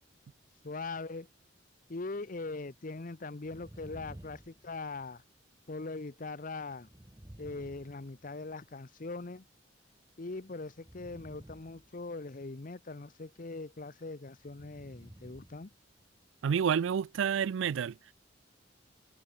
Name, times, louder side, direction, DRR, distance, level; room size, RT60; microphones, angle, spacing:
voice 1, 0.6-1.3 1.9-5.2 5.7-6.9 7.4-9.4 10.2-15.7, left 3 dB, 45° left, 0.8 m, -41 dB
sound 1, 3.4-5.3 6.8-8.6 10.7-12.4 14.4-15.7 16.0-16.1, right 1 dB, 15° right, 0.9 m, -53 dB
voice 2, 16.4-17.9, right 7 dB, 85° right, 0.4 m, -29 dB
head